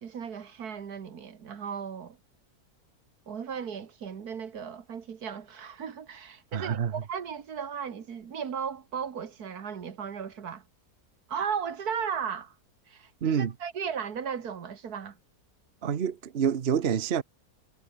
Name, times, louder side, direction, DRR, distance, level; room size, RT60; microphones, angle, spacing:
voice 1, 0.0-2.2 3.3-10.6 11.3-12.6 12.9-15.2, right 7 dB, 80° right, 2.0 m, -36 dB
voice 2, 6.5-6.9 13.2-13.5 15.8-17.2, right 7 dB, 45° right, 1.1 m, -27 dB
omnidirectional pair, 1.6 m